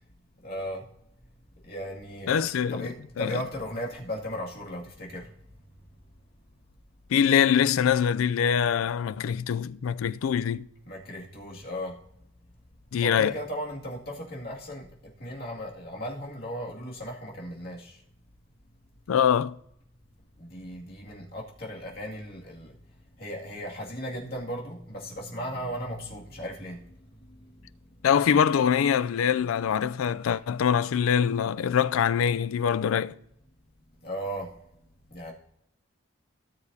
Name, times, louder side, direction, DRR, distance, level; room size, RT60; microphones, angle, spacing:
voice 1, 0.4-0.9 1.6-2.3 2.7-5.3 10.9-11.9 13.0-14.9 15.2-18.0 20.4-22.8 23.2-26.8 27.1-27.7 34.0-34.5 35.1-35.3, equal, 50° left, 2.3 m, -36 dB
voice 2, 2.3-2.9 3.2-3.4 7.1-10.7 12.9-13.3 19.1-19.6 28.0-33.2, left 8 dB, 90° left, 0.4 m, -24 dB
17.5 x 6.9 x 2.7 m
head